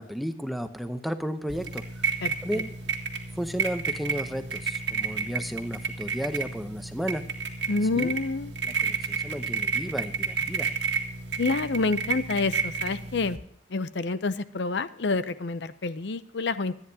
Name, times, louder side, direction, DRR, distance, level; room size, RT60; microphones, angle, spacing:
voice 1, 0.0-2.1 2.4-2.7 3.4-7.2 7.9-8.1 8.6-10.7, equal, ahead, 8 dB, 0.7 m, -33 dB
sound 1, 1.5-13.4, right 5 dB, 70° right, 1.8 m, -31 dB
voice 2, 2.2-2.6 7.7-8.5 11.4-13.4 13.7-16.8, left 3 dB, 65° left, 13 dB, 0.6 m, -28 dB
25.5 x 9.8 x 2.8 m, 0.65 s
head